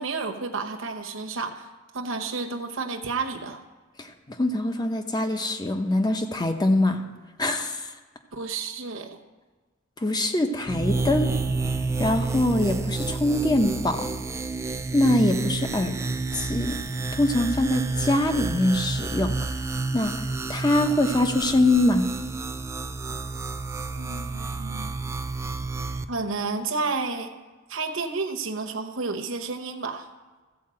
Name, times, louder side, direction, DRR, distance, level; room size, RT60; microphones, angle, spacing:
voice 1, 0.0-3.6 8.3-9.2 23.9-24.9 26.1-27.3 27.7-30.1, right 4 dB, 65° right, 4 dB, 0.9 m, -31 dB
voice 2, 4.0-7.0 7.4-7.9 10.0-11.3 12.0-14.1 14.9-16.0 16.3-16.8 17.2-19.3 19.9-20.2 20.5-22.1, left 1 dB, 20° left, 6 dB, 0.7 m, -23 dB
sound 1, 10.7-26.0, right 3 dB, 15° right, 0.3 m, -30 dB
14.0 x 4.7 x 7.6 m, 1.3 s
head